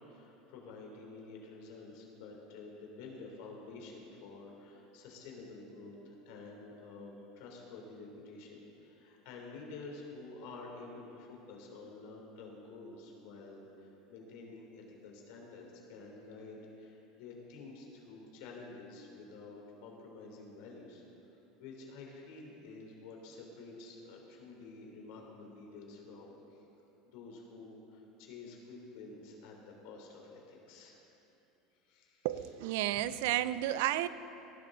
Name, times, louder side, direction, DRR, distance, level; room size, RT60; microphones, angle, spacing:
voice 1, 0.1-21.0 21.6-26.6 27.1-31.0 31.8-32.4, left 3 dB, 70° left, 0 dB, 3.2 m, -50 dB
voice 2, 32.2-34.1, right 14 dB, 75° right, 15 dB, 0.4 m, -32 dB
18.0 x 11.5 x 3.9 m, 2.9 s
supercardioid pair, 150°, 0 cm